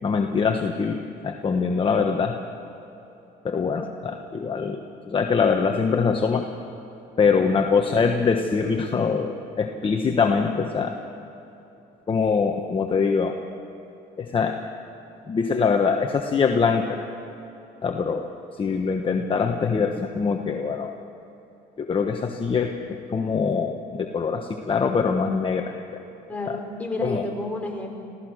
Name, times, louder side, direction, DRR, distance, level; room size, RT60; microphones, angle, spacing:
voice 1, 0.0-2.4 3.4-6.5 7.2-11.0 12.1-13.4 14.2-14.6 15.3-17.0 17.8-18.3 18.5-21.0 21.8-25.7 26.5-26.6 27.0-27.2, left 5 dB, 30° left, 4 dB, 1.2 m, -23 dB
voice 2, 26.3-27.9, left 2 dB, 10° left, -1 dB, 4.4 m, -31 dB
27.5 x 16.0 x 6.4 m, 2.9 s
cardioid pair, 110°, 17 cm